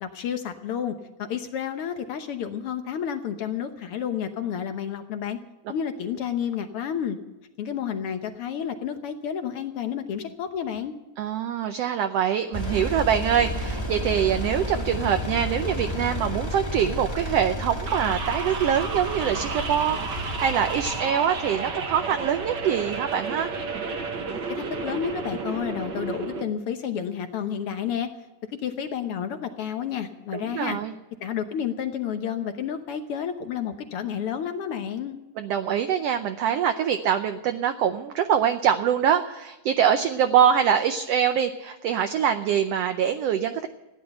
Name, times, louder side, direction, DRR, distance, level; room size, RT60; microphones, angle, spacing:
voice 1, 0.0-5.4 5.7-7.2 7.6-10.9 24.5-28.1 28.6-30.8 31.2-35.2, left 8 dB, 65° left, 7 dB, 1.4 m, -30 dB
voice 2, 11.2-23.5 30.3-30.9 35.4-43.7, right 8 dB, 75° right, 7 dB, 1.5 m, -24 dB
Engine, 12.5-21.0, equal, 10° left, 1.4 m, -32 dB
sound 1, 17.9-26.4, right 4 dB, 45° right, 1.7 m, -32 dB
15.5 x 10.0 x 7.9 m, 1.0 s
omnidirectional pair, 3.6 m